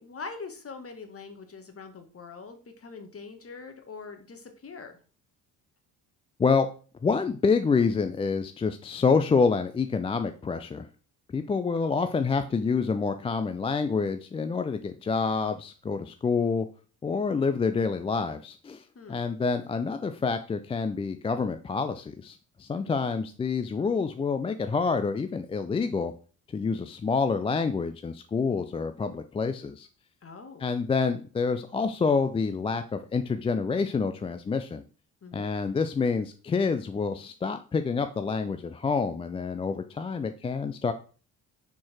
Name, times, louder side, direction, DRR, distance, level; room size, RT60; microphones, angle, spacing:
voice 1, 0.0-5.0 18.9-19.3 22.7-23.0 30.2-30.7 35.2-35.5, left 4 dB, 30° left, 7 dB, 1.7 m, -43 dB
voice 2, 7.0-10.9 11.3-16.7 17.0-26.1 26.5-29.9 30.6-34.8 35.3-40.9, left 5 dB, 15° left, 8 dB, 0.4 m, -27 dB
6.2 x 5.9 x 4.4 m, 0.38 s
figure-of-eight pair, 45°, 47 cm